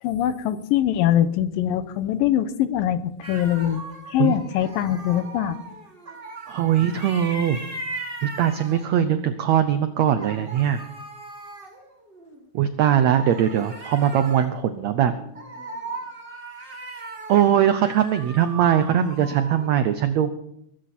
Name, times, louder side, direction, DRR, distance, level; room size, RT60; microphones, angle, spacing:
voice 1, 0.0-3.8 4.1-5.6, left 11 dB, 80° left, 13 dB, 2.5 m, -22 dB
sound 1, 3.2-9.2 10.0-12.4 13.1-19.7, right 3 dB, 25° right, 1.3 m, -38 dB
voice 2, 6.5-7.6 8.2-10.8 12.5-15.1 17.3-20.3, right 10 dB, 85° right, 10 dB, 1.5 m, -21 dB
22.0 x 12.5 x 4.3 m, 0.75 s
omnidirectional pair, 4.2 m